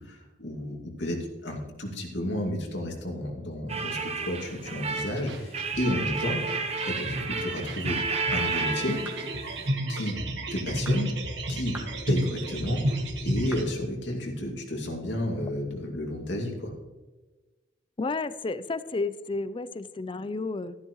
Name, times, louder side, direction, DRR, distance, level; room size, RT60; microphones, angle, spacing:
voice 1, 0.0-8.0 8.3-9.0 9.9-10.2 10.5-11.1 11.5-11.8 12.1-16.7, left 1 dB, 85° left, 0 dB, 2.4 m, -32 dB
sound 1, 3.7-9.7, right 4 dB, 35° right, 0.8 m, -32 dB
sound 2, 4.9-13.6, right 1 dB, 75° right, 1.5 m, -32 dB
sound 3, 9.0-9.3 10.0-10.1 10.8-11.0 11.7-12.0 12.6-12.7 13.5-13.7, right 1 dB, 10° right, 1.5 m, -43 dB
voice 2, 18.0-20.8, left 3 dB, 30° left, 15 dB, 0.4 m, -31 dB
13.0 x 11.5 x 3.1 m, 1.2 s
head